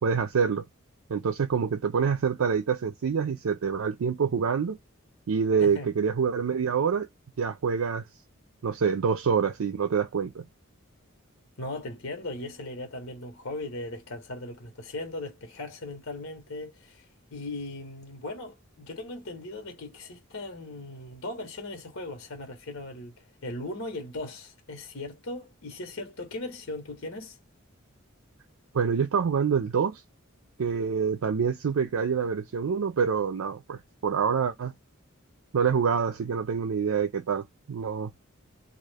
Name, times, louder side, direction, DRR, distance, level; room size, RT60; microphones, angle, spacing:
voice 1, 0.0-0.6 1.1-4.8 5.3-7.1 7.4-8.0 8.6-10.4 28.7-30.0 30.6-34.7 35.5-38.1, right 6 dB, 90° right, 0.5 m, -26 dB
voice 2, 11.6-17.0 17.3-23.1 23.4-27.4, left 2 dB, 80° left, 1.1 m, -38 dB
2.4 x 2.3 x 3.3 m
head